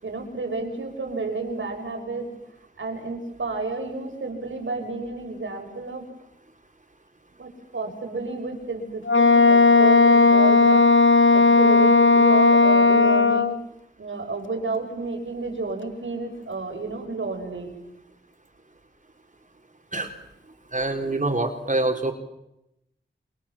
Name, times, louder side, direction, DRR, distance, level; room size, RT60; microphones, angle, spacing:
voice 1, 0.0-2.3 2.8-6.0 7.4-13.5 14.0-17.8, right 3 dB, 80° right, 3 dB, 6.6 m, -31 dB
Wind instrument woodwind instrument, 9.1-13.6, left 3 dB, 75° left, 1.2 m, -16 dB
voice 2, 20.7-22.1, right 2 dB, 40° right, 3 dB, 4.2 m, -25 dB
29.5 x 27.0 x 7.5 m, 0.89 s
wide cardioid pair, 55°, 20 cm